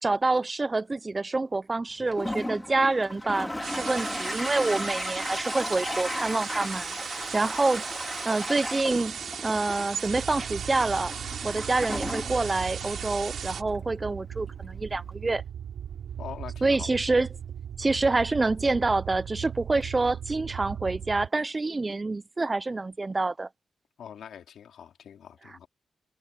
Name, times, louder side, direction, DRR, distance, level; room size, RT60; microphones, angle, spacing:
voice 1, 0.0-7.8 8.2-9.2 9.4-11.1 11.4-15.4 16.6-17.3 17.8-23.5, right 3 dB, 25° right, 0.4 m, -27 dB
Toilet flush, 2.0-15.1, left 1 dB, 10° left, 2.4 m, -36 dB
sound 1, 3.6-13.6, right 7 dB, 70° right, 3.0 m, -37 dB
sound 2, 10.0-21.3, right 9 dB, 90° right, 6.5 m, -38 dB
voice 2, 16.2-16.9 24.0-25.7, left 8 dB, 85° left, 3.4 m, -43 dB
wide cardioid pair, 120°, 0 cm